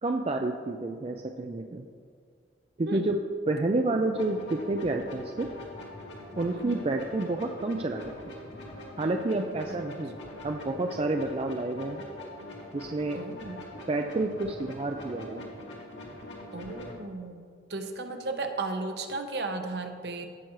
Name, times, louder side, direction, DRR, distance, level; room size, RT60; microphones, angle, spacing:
voice 1, 0.0-1.9 2.8-3.2 3.5-5.5 6.4-8.1 9.0-10.2 10.4-12.0 12.7-13.2 13.9-15.4, right 2 dB, 30° right, 4 dB, 0.4 m, -29 dB
sound 1, 4.1-16.9, left 1 dB, 80° left, 2.2 m, -44 dB
voice 2, 13.1-13.6 16.5-20.3, right 3 dB, 60° right, 5 dB, 0.9 m, -35 dB
16.5 x 5.9 x 3.1 m, 2.1 s
head